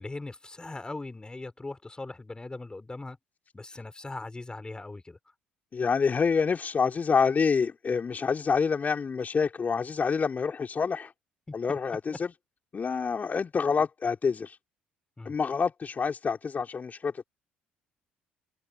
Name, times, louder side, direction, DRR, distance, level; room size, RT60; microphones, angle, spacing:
voice 1, 0.0-3.2 3.5-5.2 11.5-11.8 12.1-12.2 15.2-15.3, left 2 dB, 15° left, 5.0 m, -40 dB
voice 2, 5.7-11.1 11.5-12.3 12.7-14.6 15.3-17.2, left 5 dB, 35° left, 3.6 m, -27 dB
hypercardioid pair, 55°, 5 cm